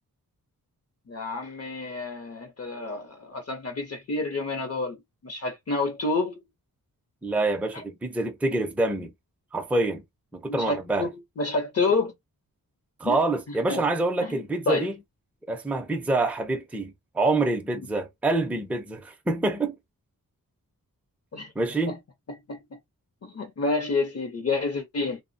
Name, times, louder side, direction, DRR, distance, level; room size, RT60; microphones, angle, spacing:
voice 1, 1.1-6.4 7.7-7.8 10.5-11.1 11.4-12.1 13.1-13.2 13.5-13.8 14.2-14.4 14.7-14.9 21.3-21.5 21.9-22.0 22.5-22.8 23.2-25.2, left 3 dB, 45° left, 0.6 m, -29 dB
voice 2, 7.2-9.1 9.5-10.0 10.3-11.1 13.0-15.0 15.5-19.8 21.6-22.0, right 2 dB, 5° right, 0.4 m, -26 dB
3.0 x 2.1 x 2.5 m
wide cardioid pair, 135°, 35 cm